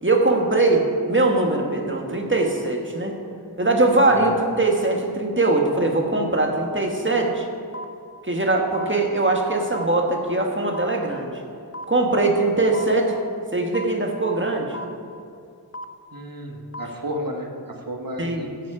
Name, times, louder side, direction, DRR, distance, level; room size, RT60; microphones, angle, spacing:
voice 1, 0.0-3.1 3.6-7.5 8.3-11.3 11.9-13.1 13.5-14.8 18.2-18.5, right 2 dB, 30° right, 1 dB, 1.6 m, -21 dB
sound 1, 7.7-7.8 8.7-8.8 9.7-9.8 10.7-10.8 11.7-11.8 12.7-12.8 13.7-13.8 14.7-14.8 15.7-15.8 16.7-16.8, equal, 35° left, 0.6 m, -33 dB
voice 2, 16.1-18.7, equal, 55° right, 2 dB, 1.4 m, -32 dB
13.0 x 8.6 x 5.0 m, 2.5 s
wide cardioid pair, 55°, 41 cm